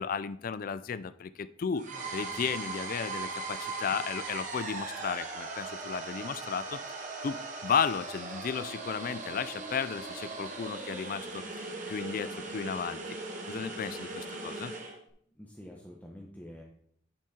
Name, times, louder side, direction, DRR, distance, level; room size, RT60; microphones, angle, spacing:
voice 1, 0.0-1.9 2.1-6.8 7.2-13.0 13.5-14.7, left 6 dB, 50° left, 15 dB, 0.4 m, -34 dB
sound 1, 1.8-15.0, right 3 dB, 45° right, 1.7 m, -39 dB
voice 2, 1.9-2.5 15.2-16.6, equal, 10° left, -2 dB, 1.0 m, -48 dB
10.0 x 6.4 x 4.3 m, 0.66 s
head